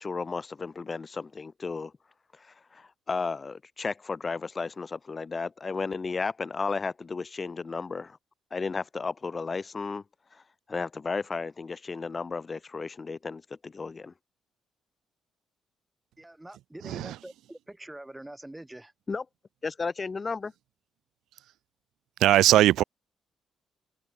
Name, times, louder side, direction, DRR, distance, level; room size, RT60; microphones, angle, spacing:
voice 1, 0.0-1.9 2.4-8.2 8.5-10.0 10.3-10.4 10.7-14.1 19.1-19.2 19.6-20.5, left 4 dB, 30° left, 3.6 m, -33 dB
voice 2, 16.2-18.9, right 1 dB, 10° right, 4.2 m, -45 dB
voice 3, 22.2-22.8, right 14 dB, 85° right, 0.7 m, -20 dB
open air
cardioid pair, 90°, 0 cm